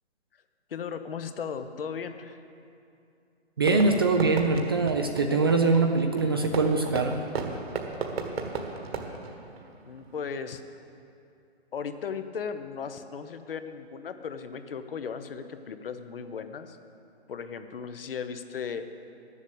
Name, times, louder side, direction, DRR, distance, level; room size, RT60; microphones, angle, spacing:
voice 1, 0.7-2.4 9.8-10.6 11.7-16.8 17.3-18.8, left 6 dB, 55° left, 9 dB, 0.8 m, -36 dB
voice 2, 3.6-7.2, right 3 dB, 20° right, 4 dB, 0.4 m, -23 dB
Fireworks, 3.6-10.2, right 4 dB, 65° right, 1.6 m, -35 dB
11.5 x 7.3 x 8.1 m, 2.6 s
figure-of-eight pair, 140°, 33 cm